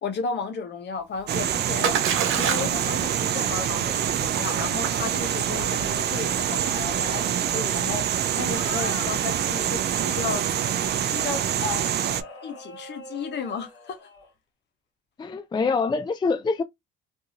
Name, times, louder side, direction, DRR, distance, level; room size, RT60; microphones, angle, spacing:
voice 1, 0.0-2.0 2.3-10.5 11.0-11.9 12.4-14.0, left 5 dB, 60° left, 1.0 m, -34 dB
Splash splatter, 1.1-11.0, right 7 dB, 90° right, 0.9 m, -33 dB
sound 1, 1.3-12.2, right 9 dB, 55° right, 0.4 m, -26 dB
sound 2, 8.5-9.1 10.0-10.5 12.0-14.3, left 3 dB, 90° left, 1.0 m, -41 dB
voice 2, 15.2-16.6, left 4 dB, 20° left, 0.4 m, -25 dB
2.6 x 2.6 x 2.8 m
cardioid pair, 90°, 20 cm